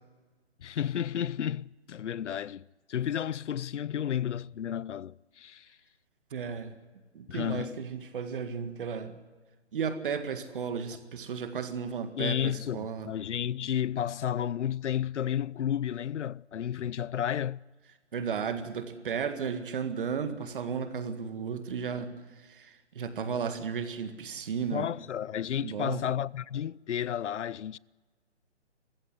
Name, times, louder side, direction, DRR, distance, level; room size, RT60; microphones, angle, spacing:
voice 1, 0.6-5.7 7.3-7.8 12.2-17.6 24.7-27.8, left 10 dB, 80° left, 0.6 m, -32 dB
voice 2, 6.3-6.7 7.1-9.2 9.7-13.1 18.1-24.9 25.6-26.0, right 6 dB, 50° right, 1.9 m, -34 dB
22.0 x 15.5 x 9.9 m
hypercardioid pair, 160°, 35 cm